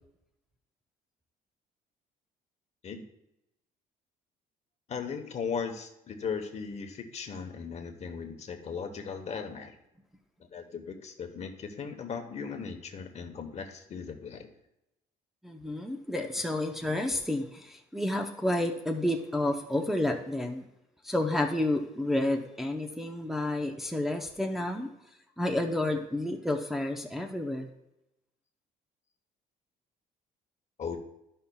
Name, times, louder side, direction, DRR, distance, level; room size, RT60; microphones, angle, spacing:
voice 1, 4.9-9.7 10.5-14.5 30.8-31.0, left 6 dB, 40° left, 6 dB, 1.0 m, -37 dB
voice 2, 15.4-20.6 21.0-24.9 25.4-27.7, left 1 dB, ahead, 1 dB, 0.7 m, -30 dB
13.0 x 5.6 x 2.3 m, 0.86 s
cardioid pair, 110°, 17 cm